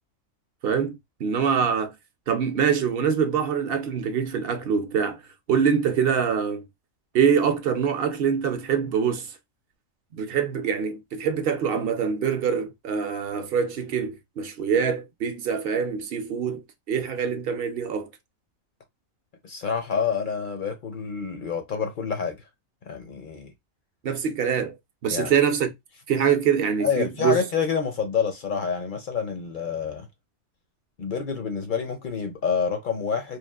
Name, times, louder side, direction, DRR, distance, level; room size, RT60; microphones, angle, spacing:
voice 1, 0.6-1.9 2.3-5.2 5.5-6.6 7.1-9.3 10.1-16.6 16.9-18.1 24.0-24.7 25.0-25.7 26.1-27.4, right 7 dB, 60° right, 0.7 m, -24 dB
voice 2, 19.4-22.4 22.9-23.5 25.1-25.3 26.8-30.1 31.0-33.4, left 6 dB, 60° left, 0.5 m, -27 dB
3.1 x 2.4 x 2.3 m
omnidirectional pair, 1.4 m